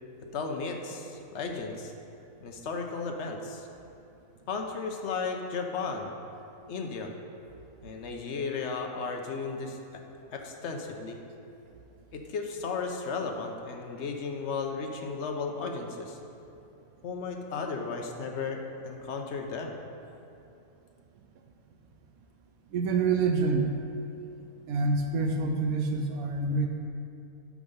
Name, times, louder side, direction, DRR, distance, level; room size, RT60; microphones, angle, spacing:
voice 1, 0.3-1.9 2.4-3.7 4.5-6.2 6.7-7.1 7.8-9.8 10.3-11.2 12.1-16.2 17.0-18.6 18.8-19.8, left 4 dB, 55° left, 3 dB, 1.1 m, -34 dB
voice 2, 22.7-23.8 24.7-26.7, right 3 dB, 85° right, 3 dB, 1.1 m, -26 dB
8.4 x 6.3 x 5.5 m, 2.8 s
omnidirectional pair, 1.5 m